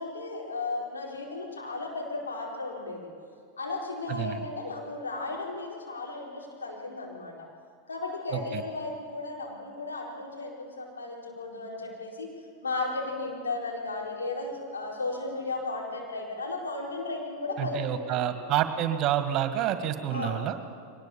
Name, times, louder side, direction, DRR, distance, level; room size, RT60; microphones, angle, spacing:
voice 1, 0.0-3.1 3.6-7.5 7.9-12.3 12.6-17.8 18.1-18.5 20.1-20.5, left 3 dB, 85° left, -2 dB, 4.7 m, -35 dB
voice 2, 4.1-4.4 8.3-8.6 17.6-20.6, right 11 dB, 45° right, 9 dB, 1.8 m, -28 dB
22.5 x 19.5 x 7.2 m, 2.2 s
hypercardioid pair, 95°, 0 cm